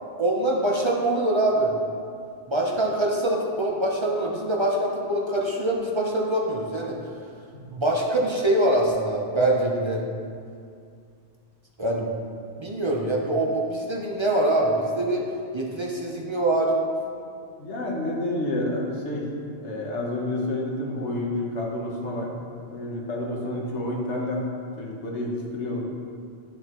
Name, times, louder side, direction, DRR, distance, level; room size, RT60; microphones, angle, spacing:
voice 1, 0.2-1.8 2.5-7.0 7.7-10.0 11.8-12.1 12.6-15.2 15.5-16.7, right 1 dB, 25° right, -2 dB, 0.8 m, -24 dB
voice 2, 17.2-19.3 19.6-22.3 22.7-24.5 24.8-25.8, left 1 dB, 75° left, -2 dB, 1.6 m, -29 dB
10.5 x 6.8 x 3.1 m, 2.3 s
omnidirectional pair, 1.2 m